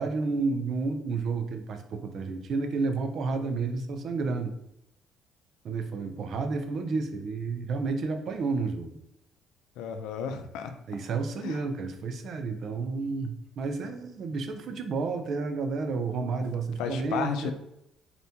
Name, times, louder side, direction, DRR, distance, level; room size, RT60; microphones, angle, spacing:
voice 1, 0.0-4.5 5.6-9.0 10.9-17.5, right 4 dB, 50° right, 6 dB, 0.6 m, -31 dB
voice 2, 9.8-10.7 11.4-11.6 16.8-17.5, left 7 dB, 90° left, 7 dB, 0.5 m, -33 dB
4.2 x 3.4 x 2.8 m, 0.81 s
cardioid pair, 135°, 0 cm